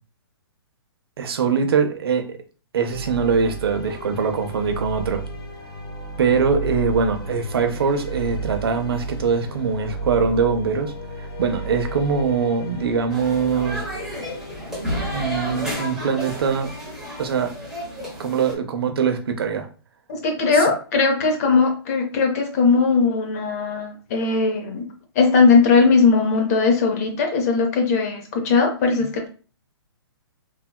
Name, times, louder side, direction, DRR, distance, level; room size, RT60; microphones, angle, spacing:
voice 1, 1.2-2.4 2.7-5.2 6.2-13.8 14.8-14.9 15.1-16.7 17.2-17.5 18.2-19.7 20.5-20.7, right 6 dB, 65° right, 6 dB, 0.6 m, -22 dB
sound 1, 2.9-15.7, right 2 dB, 70° left, 1.2 m, -33 dB
sound 2, 13.1-18.5, equal, 5° right, 0.7 m, -31 dB
voice 2, 20.1-24.9 25.2-29.3, left 4 dB, 35° left, 4 dB, 0.6 m, -19 dB
3.3 x 2.2 x 2.2 m, 0.37 s
hypercardioid pair, 150°, 14 cm